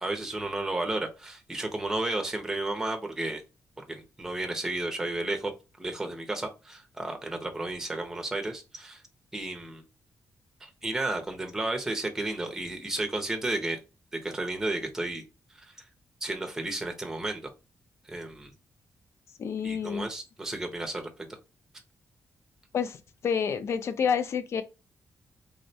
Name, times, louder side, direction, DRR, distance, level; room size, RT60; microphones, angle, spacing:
voice 1, 0.0-3.4 3.8-5.5 5.8-9.0 9.3-9.8 10.6-13.8 14.1-15.2 15.6-15.7 16.2-17.5 18.1-18.5 19.6-21.1, right 2 dB, 10° right, 0.5 m, -32 dB
voice 2, 19.4-20.1 22.7-23.0 23.2-24.6, left 7 dB, 55° left, 0.4 m, -28 dB
3.5 x 2.1 x 2.6 m
wide cardioid pair, 155°, 6 cm